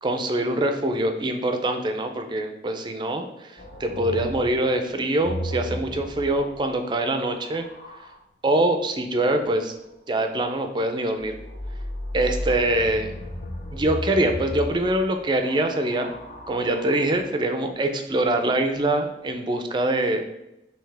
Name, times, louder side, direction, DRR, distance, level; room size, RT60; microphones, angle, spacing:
voice 1, 0.0-7.6 8.4-9.7 10.1-11.4 12.1-13.1 13.7-16.1 16.5-20.3, right 1 dB, 25° right, 6 dB, 0.4 m, -24 dB
sound 1, 3.6-8.2 11.2-17.3 18.3-18.9, left 1 dB, 45° left, 0.5 m, -35 dB
5.7 x 2.8 x 3.3 m, 0.89 s
head